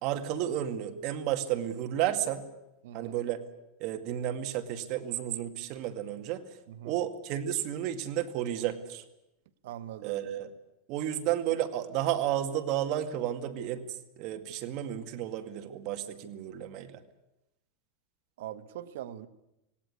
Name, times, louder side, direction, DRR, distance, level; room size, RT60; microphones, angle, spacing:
voice 1, 0.0-2.4 2.9-3.4 3.8-6.4 6.8-9.0 10.0-10.5 10.9-13.8 14.2-17.0, right 11 dB, 45° right, 7 dB, 2.1 m, -32 dB
voice 2, 2.8-3.1 6.7-6.9 9.6-10.2 18.4-19.3, right 11 dB, 75° right, 11 dB, 1.3 m, -41 dB
18.0 x 18.0 x 9.7 m, 0.90 s
supercardioid pair, 160°, 0 cm